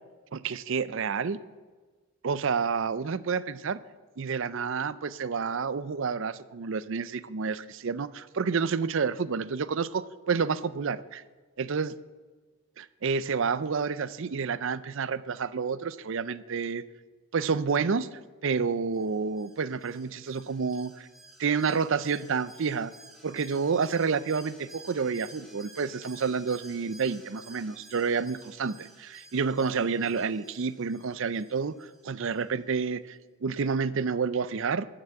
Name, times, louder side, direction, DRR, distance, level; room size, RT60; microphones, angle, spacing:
voice 1, 0.3-1.4 2.2-3.8 4.2-11.2 11.6-12.0 12.8-16.8 17.3-21.1 21.4-22.9 23.2-34.9, right 5 dB, 60° right, 17 dB, 0.5 m, -29 dB
Alarm, 18.9-32.4 32.7-32.8, right 1 dB, ahead, 1.6 m, -53 dB
14.0 x 6.0 x 7.8 m, 1.3 s
head